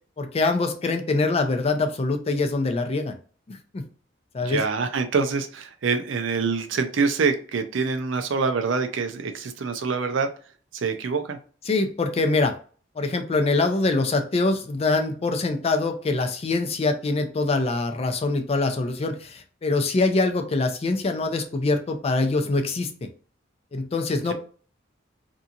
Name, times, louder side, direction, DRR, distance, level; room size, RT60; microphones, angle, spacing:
voice 1, 0.2-3.2 3.5-3.8 4.3-4.6 11.7-12.5 13.0-22.9 23.7-24.3, left 3 dB, 30° left, 6 dB, 0.4 m, -24 dB
voice 2, 4.4-10.3 10.7-11.4 24.3-24.4, right 4 dB, 75° right, 7 dB, 0.5 m, -25 dB
2.8 x 2.6 x 2.4 m, 0.40 s
head